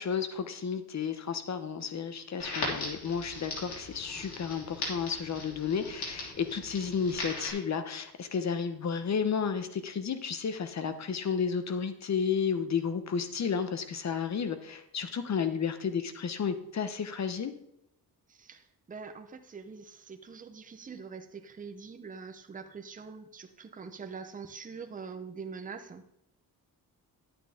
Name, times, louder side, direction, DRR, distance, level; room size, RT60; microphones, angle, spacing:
voice 1, 0.0-17.5, left 6 dB, 45° left, 9 dB, 1.0 m, -32 dB
Crackle, 2.4-7.5, left 2 dB, 85° left, 3.1 m, -39 dB
voice 2, 18.3-26.0, right 5 dB, 20° right, 6 dB, 0.7 m, -44 dB
11.0 x 8.9 x 3.6 m, 0.79 s
wide cardioid pair, 135°, 38 cm